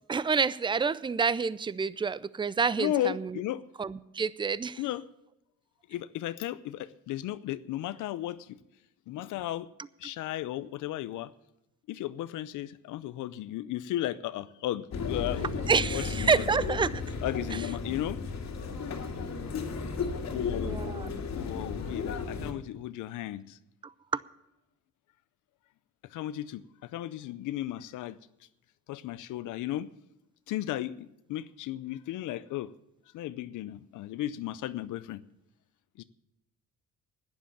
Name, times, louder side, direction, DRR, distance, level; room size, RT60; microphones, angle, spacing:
voice 1, 0.1-3.4 3.8-4.8 15.7-17.0 17.5-17.6 20.6-21.1 23.8-24.2, right 5 dB, 15° right, 18 dB, 0.5 m, -28 dB
voice 2, 2.8-3.6 4.8-5.1 5.9-8.6 9.1-9.7 10.0-11.3 11.9-15.5 15.9-16.5 17.2-18.2 20.3-20.9 21.3-23.6 26.1-28.2 28.9-29.9 30.5-32.7 33.1-35.2 36.0-36.1, left 13 dB, 85° left, 14 dB, 0.6 m, -35 dB
sound 1, 14.9-22.5, left 4 dB, 60° left, 2.2 m, -34 dB
11.5 x 10.0 x 7.1 m, 0.87 s
cardioid pair, 90°, 30 cm